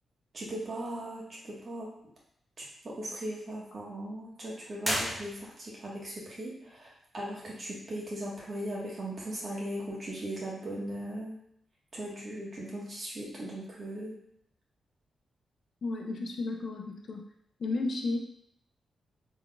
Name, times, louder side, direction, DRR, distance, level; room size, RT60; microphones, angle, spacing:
voice 1, 0.3-1.9 2.6-11.4 11.9-14.2, right 1 dB, 45° right, -5 dB, 1.5 m, -38 dB
sound 1, 4.8-5.8, equal, 5° right, 1.0 m, -33 dB
voice 2, 15.8-17.2 17.6-18.2, left 3 dB, 60° left, 2 dB, 0.6 m, -33 dB
3.7 x 3.5 x 2.4 m, 0.70 s
cardioid pair, 75°, 0 cm